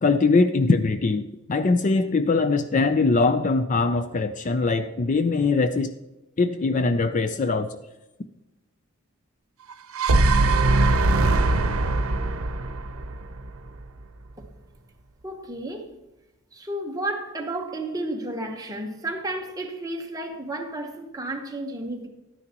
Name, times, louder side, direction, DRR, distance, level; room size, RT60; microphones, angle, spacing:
voice 1, 0.0-5.9 6.4-7.8, left 3 dB, 35° left, 0.4 m, -22 dB
sound 1, 9.7-13.9, right 2 dB, 80° right, 0.8 m, -21 dB
voice 2, 15.2-16.0 16.5-22.1, right 1 dB, 15° right, 1.0 m, -32 dB
11.5 x 9.7 x 2.9 m
head